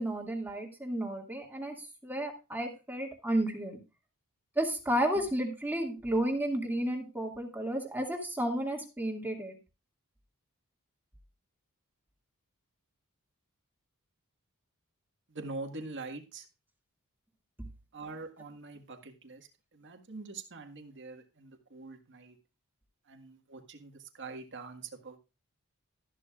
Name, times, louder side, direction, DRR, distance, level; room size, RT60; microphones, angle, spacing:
voice 1, 0.0-1.8 2.0-3.8 4.6-9.6, right 1 dB, 10° right, 1 dB, 2.3 m, -32 dB
voice 2, 15.3-16.4 17.9-22.4 23.1-25.2, right 3 dB, 55° right, 5 dB, 1.7 m, -44 dB
13.5 x 11.5 x 2.5 m, 0.29 s
head